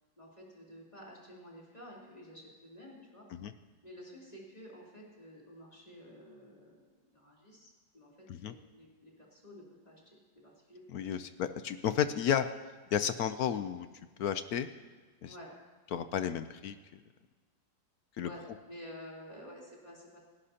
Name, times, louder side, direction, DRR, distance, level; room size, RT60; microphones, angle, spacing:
voice 1, 0.2-3.3 3.8-10.0 10.4-11.1 15.3-15.5 18.2-20.2, equal, 20° left, -5 dB, 3.6 m, -51 dB
voice 2, 10.9-12.5 12.9-13.9 14.2-14.7 15.2-15.3 15.9-17.0 18.2-18.3, left 9 dB, 70° left, 11 dB, 1.0 m, -32 dB
29.0 x 11.5 x 2.8 m, 1.4 s
omnidirectional pair, 2.0 m